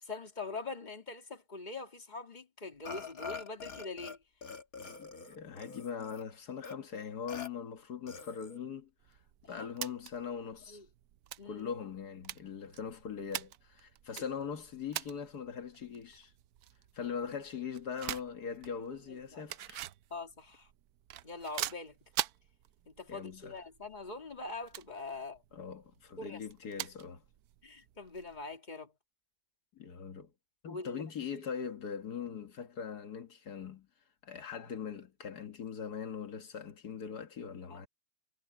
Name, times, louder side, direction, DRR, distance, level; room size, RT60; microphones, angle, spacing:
voice 1, 0.0-4.2 9.4-9.7 10.7-10.9 11.4-11.7 19.3-19.4 20.1-20.7 21.2-22.0 22.9-25.4 26.2-26.4 27.6-28.9 30.7-31.0 37.7-37.9, left 3 dB, 30° left, 2.4 m, -43 dB
Burping eructation, 2.9-4.2 4.4-6.2 6.6-6.7 7.3-7.5 8.1-8.6, left 5 dB, 65° left, 2.3 m, -44 dB
voice 2, 5.0-9.2 9.5-10.8 11.4-16.3 16.9-19.9 23.1-23.6 25.5-27.2 29.7-30.3 30.6-33.9 34.2-37.9, left 7 dB, 85° left, 2.1 m, -41 dB
sound 1, 9.0-28.5, right 12 dB, 75° right, 1.2 m, -45 dB
omnidirectional pair, 1.6 m